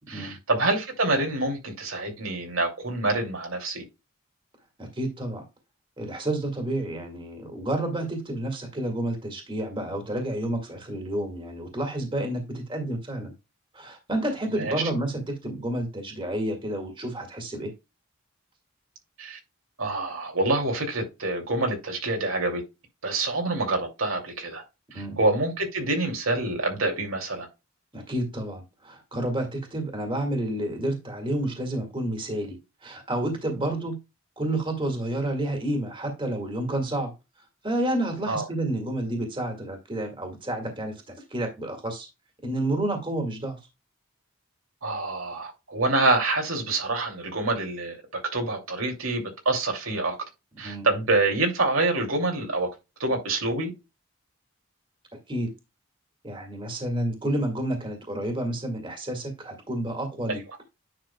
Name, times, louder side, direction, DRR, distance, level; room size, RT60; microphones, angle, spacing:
voice 1, 0.1-3.8 14.5-14.8 19.2-19.4 19.8-22.6 23.0-24.6 24.9-27.5 38.3-38.5 44.8-48.0 48.3-50.2 50.6-52.7 53.0-53.7 60.3-60.4, right 2 dB, 85° right, 2.6 m, -26 dB
voice 2, 4.8-5.4 6.0-13.3 13.7-17.7 24.9-25.2 27.9-32.6 32.8-34.0 34.4-37.1 37.6-42.1 42.4-43.6 50.6-50.9 55.3-55.5 56.2-60.4, right 1 dB, 25° right, 1.9 m, -30 dB
9.9 x 5.9 x 2.3 m
head